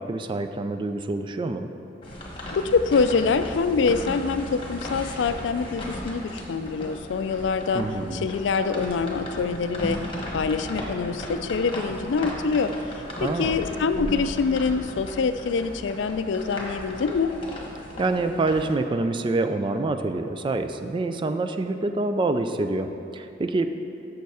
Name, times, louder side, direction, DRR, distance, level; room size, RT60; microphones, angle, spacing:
voice 1, 0.0-1.7 7.7-8.3 13.2-13.6 18.0-23.7, right 2 dB, 25° right, 8 dB, 0.3 m, -26 dB
sound 1, 2.0-18.7, left 1 dB, 30° left, 1.3 m, -36 dB
voice 2, 2.5-7.8 8.1-10.0 10.3-12.7 13.2-17.3, left 5 dB, 75° left, 10 dB, 0.4 m, -25 dB
6.9 x 6.6 x 4.8 m, 2.8 s
head